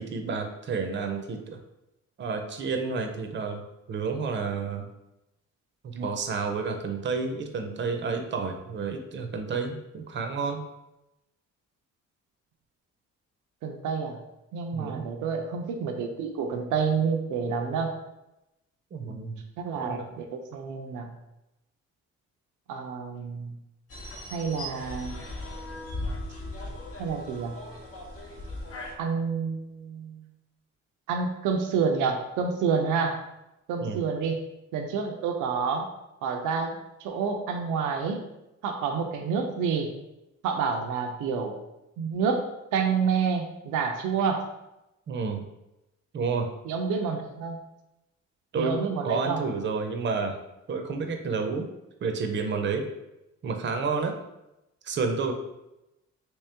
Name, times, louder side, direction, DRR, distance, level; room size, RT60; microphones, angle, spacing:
voice 1, 0.0-1.6 2.2-3.6 3.9-4.9 5.8-10.6 14.7-15.1 18.9-19.4 19.8-20.0 33.8-34.0 45.1-45.4 46.1-46.5 48.5-50.4 50.7-51.7 52.0-52.8 53.4-54.1 54.8-55.3, right 4 dB, 40° right, 5 dB, 0.6 m, -30 dB
voice 2, 13.6-14.2 14.5-17.9 19.0-19.3 19.6-21.1 22.7-23.6 24.3-25.2 27.0-27.6 29.0-30.3 31.1-33.2 33.7-34.4 34.7-35.9 36.2-38.2 38.6-39.9 40.4-41.6 42.0-42.4 42.7-44.5 46.7-47.6 48.5-49.4, right 5 dB, 85° right, 4 dB, 0.5 m, -28 dB
sound 1, 23.9-28.9, left 1 dB, 50° left, 0.8 m, -38 dB
3.1 x 2.9 x 3.3 m, 0.93 s
cardioid pair, 90°, 30 cm